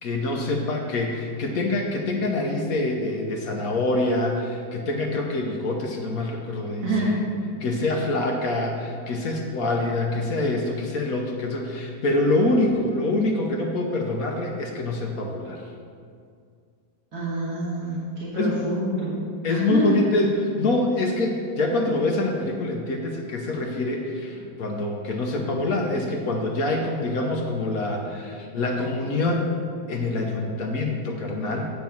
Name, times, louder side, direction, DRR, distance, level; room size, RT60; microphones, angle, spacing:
voice 1, 0.0-7.2 7.6-15.6 18.3-18.7 19.4-20.3 20.6-29.6 29.9-31.6, left 2 dB, 55° left, 1 dB, 1.1 m, -25 dB
voice 2, 6.8-7.2 17.1-19.1 19.4-20.0, right 2 dB, 50° right, -10 dB, 2.3 m, -27 dB
9.5 x 4.5 x 6.9 m, 2.3 s
omnidirectional pair, 2.1 m